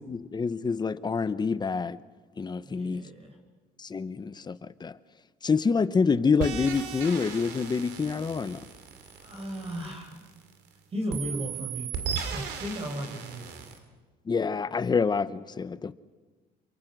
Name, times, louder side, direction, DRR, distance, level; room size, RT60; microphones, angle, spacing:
voice 1, 0.1-2.0 2.4-3.0 3.8-5.0 5.4-8.6 14.3-15.9, left 5 dB, 25° left, 15 dB, 0.8 m, -27 dB
voice 2, 2.6-3.4 9.2-10.3 10.9-11.9 12.3-13.6, equal, 35° right, 3 dB, 5.2 m, -35 dB
sound 1, 6.4-10.7 11.1-13.8, right 7 dB, 85° right, 2.8 m, -37 dB
28.0 x 23.0 x 6.2 m, 1.3 s
cardioid pair, 110°, 17 cm